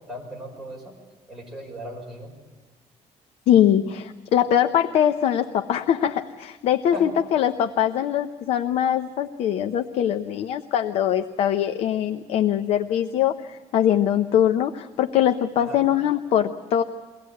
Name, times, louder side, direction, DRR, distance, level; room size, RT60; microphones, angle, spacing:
voice 1, 0.1-0.8 1.3-2.3 6.9-7.1 15.6-15.8, left 1 dB, ahead, -4 dB, 5.7 m, -36 dB
voice 2, 3.5-16.8, left 10 dB, 60° left, 7 dB, 0.7 m, -22 dB
23.5 x 17.0 x 8.3 m, 1.2 s
cardioid pair, 175°, 12 cm